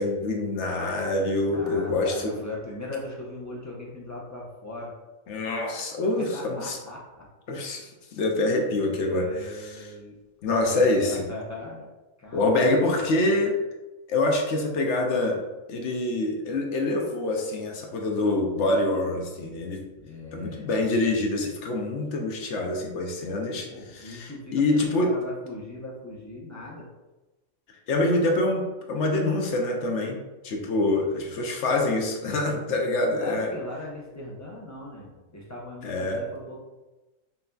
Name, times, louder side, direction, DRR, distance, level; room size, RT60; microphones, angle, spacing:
voice 1, 0.0-2.3 5.3-6.8 7.5-9.8 10.4-11.3 12.3-13.5 14.1-15.4 15.7-19.8 20.3-23.7 23.9-25.1 27.9-30.2 30.4-33.5 35.8-36.2, left 2 dB, 65° left, 1 dB, 0.8 m, -25 dB
voice 2, 1.5-4.9 6.2-7.3 8.9-10.1 10.5-11.9 12.2-13.4 20.0-20.8 23.6-26.9 30.8-31.1 33.1-36.6, left 2 dB, 25° left, -4 dB, 0.3 m, -39 dB
5.7 x 2.6 x 2.3 m, 1.1 s
omnidirectional pair, 1.4 m